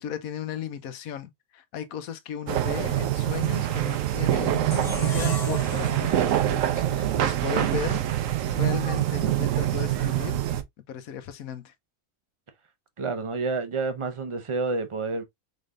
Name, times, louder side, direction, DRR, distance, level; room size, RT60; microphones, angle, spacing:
voice 1, 0.0-8.0 8.5-10.4 10.9-11.7, left 8 dB, 75° left, 1.1 m, -36 dB
sound 1, 2.5-10.6, right 13 dB, 65° right, 0.9 m, -25 dB
sound 2, 4.7-7.9, left 3 dB, 25° left, 1.8 m, -37 dB
voice 2, 13.0-15.2, right 3 dB, 50° right, 0.3 m, -29 dB
5.0 x 3.4 x 2.4 m
omnidirectional pair, 1.6 m